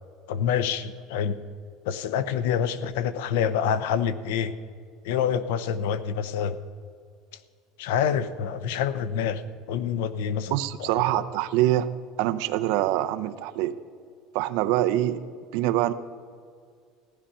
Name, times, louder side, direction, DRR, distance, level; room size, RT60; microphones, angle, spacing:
voice 1, 0.3-1.4 1.8-4.5 5.0-6.6 7.8-9.4 9.7-10.5 11.0-11.1, left 8 dB, 80° left, 14 dB, 0.7 m, -26 dB
voice 2, 10.5-11.9 12.2-13.8 14.3-15.2 15.5-15.9, right 14 dB, 55° right, 11 dB, 0.6 m, -24 dB
15.5 x 10.0 x 5.5 m, 2.1 s
cardioid pair, 180°, 0 cm